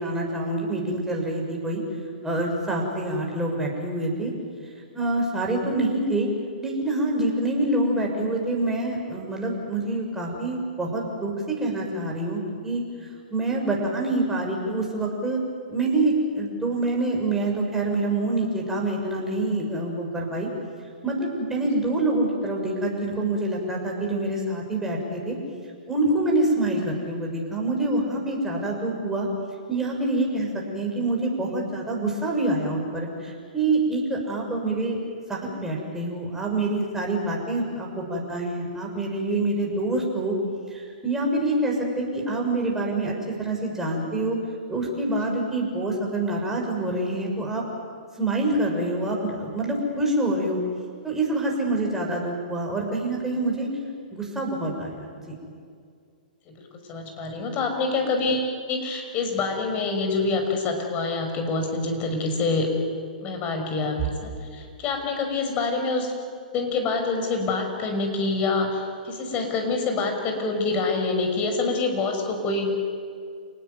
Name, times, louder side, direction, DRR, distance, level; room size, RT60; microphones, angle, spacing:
voice 1, 0.0-1.8 2.2-4.3 4.9-6.3 6.6-12.8 13.3-15.4 15.7-20.5 21.0-25.4 25.9-29.3 29.7-35.0 35.3-40.4 40.7-44.4 44.7-47.6 48.2-50.6 51.0-53.7 54.1-55.3, right 2 dB, 10° right, -1 dB, 6.5 m, -26 dB
voice 2, 56.5-62.7 63.2-66.1 66.5-72.7, left 3 dB, 30° left, 4 dB, 6.0 m, -26 dB
28.5 x 19.0 x 9.5 m, 2.2 s
hypercardioid pair, 130°, 5 cm